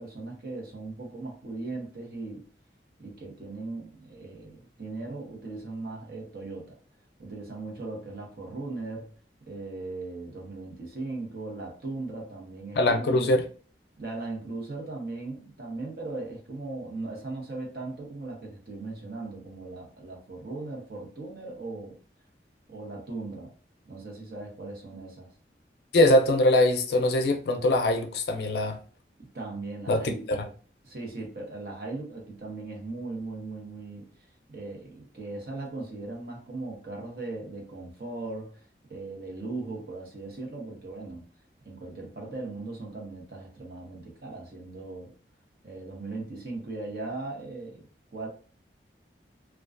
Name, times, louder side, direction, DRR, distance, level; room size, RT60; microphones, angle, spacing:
voice 1, 0.0-2.5 3.0-6.8 7.2-9.1 9.5-13.3 14.0-22.0 22.7-23.5 23.8-25.3 29.3-30.2 30.8-41.3 41.6-45.1 45.6-48.3, right 3 dB, 60° right, 0.8 m, -38 dB
voice 2, 12.8-13.4 25.9-28.8 29.9-30.0 30.3-30.4, left 1 dB, 70° left, 0.4 m, -22 dB
2.3 x 2.2 x 2.4 m
head